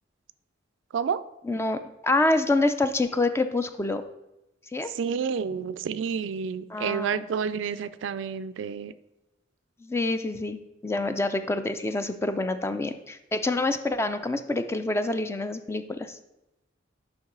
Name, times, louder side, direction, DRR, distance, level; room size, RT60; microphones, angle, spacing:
voice 1, 1.4-4.0 4.7-4.9 6.7-7.3 9.8-16.2, left 2 dB, 15° left, 9 dB, 0.3 m, -27 dB
voice 2, 4.9-8.9, right 6 dB, 70° right, 15 dB, 0.3 m, -29 dB
7.1 x 5.3 x 3.8 m, 0.94 s
head